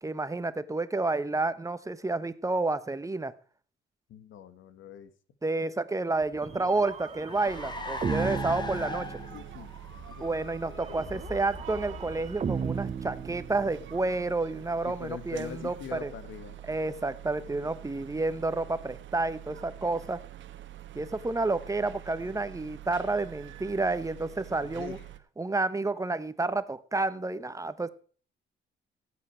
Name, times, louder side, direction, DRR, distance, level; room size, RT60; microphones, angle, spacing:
voice 1, 0.0-3.3 5.4-9.1 10.2-16.1 16.7-20.2 20.9-25.0 25.4-27.9, right 3 dB, 15° right, 14 dB, 1.1 m, -30 dB
voice 2, 4.1-5.1 8.7-9.7 10.1-10.3 10.6-10.8 14.8-16.6 24.6-25.0, left 9 dB, 75° left, 13 dB, 1.4 m, -43 dB
Car, 6.2-14.0, left 3 dB, 20° left, 1.7 m, -42 dB
sound 1, 6.4-9.7 10.8-14.0, right 6 dB, 35° right, 0.7 m, -36 dB
sound 2, 7.5-25.2, right 13 dB, 70° right, 1.3 m, -46 dB
15.0 x 8.5 x 4.5 m, 0.43 s
cardioid pair, 90°, 20 cm